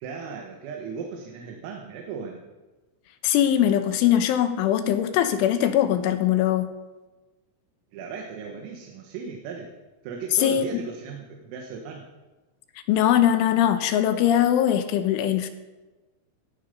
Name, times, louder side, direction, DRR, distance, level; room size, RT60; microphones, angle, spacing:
voice 1, 0.0-2.4 7.9-9.7 10.0-12.1, right 5 dB, 90° right, 1 dB, 4.3 m, -36 dB
voice 2, 3.2-6.7 10.4-10.8 12.9-15.5, left 10 dB, 75° left, 8 dB, 3.4 m, -21 dB
18.0 x 14.5 x 5.4 m, 1.2 s
omnidirectional pair, 5.9 m